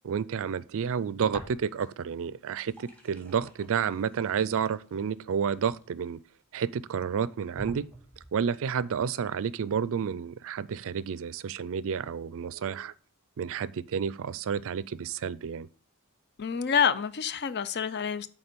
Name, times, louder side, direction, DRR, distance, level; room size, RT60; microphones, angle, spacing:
voice 1, 0.0-6.2 6.5-7.9 8.3-12.9 13.4-15.7, right 7 dB, 65° right, 0.4 m, -30 dB
sound 1, 1.3-2.1 2.4-6.4 6.9-7.0 7.6-8.5, right 1 dB, 5° left, 2.1 m, -48 dB
voice 2, 16.4-18.3, left 7 dB, 50° left, 0.5 m, -27 dB
8.8 x 3.7 x 6.7 m
head